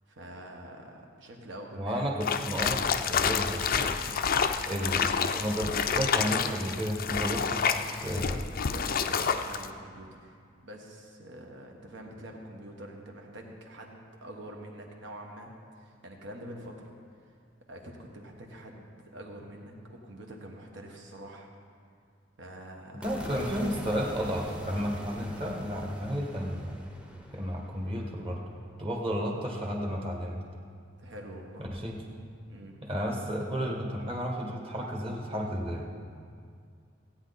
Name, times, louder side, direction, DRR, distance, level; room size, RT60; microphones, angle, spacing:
voice 1, 0.1-2.0 4.5-4.8 8.7-17.4 17.7-21.5 22.4-23.1 31.0-31.7 32.5-32.8, right 1 dB, 65° right, 1 dB, 1.5 m, -45 dB
voice 2, 1.8-3.9 4.7-8.4 23.0-26.8 27.3-28.4 28.8-30.4 31.6-31.9 32.8-35.9, equal, 30° right, 0 dB, 1.5 m, -32 dB
sound 1, 2.2-9.7, left 6 dB, 50° left, 0.5 m, -29 dB
sound 2, 23.0-29.3, equal, 5° right, 0.8 m, -44 dB
16.0 x 9.0 x 4.1 m, 2.2 s
head